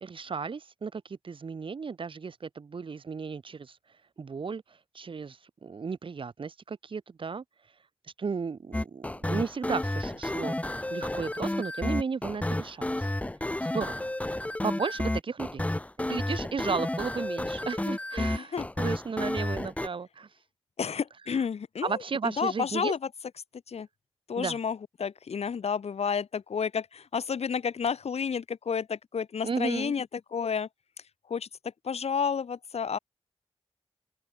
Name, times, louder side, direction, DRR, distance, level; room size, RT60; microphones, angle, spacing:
voice 1, 0.0-3.8 4.2-7.4 8.2-10.6 10.9-13.1 13.6-14.1 14.6-15.6 16.0-20.3 21.3-21.4 21.8-22.9 24.4-24.6 29.4-29.9, right 5 dB, 55° right, 0.7 m, -34 dB
sound 1, 8.7-19.9, left 1 dB, 15° left, 0.9 m, -31 dB
voice 2, 18.2-18.7 20.8-23.0 23.7-23.9 24.3-30.1 30.3-30.7 31.3-31.5 31.8-33.0, left 6 dB, 90° left, 1.2 m, -31 dB
open air
wide cardioid pair, 90°, 10 cm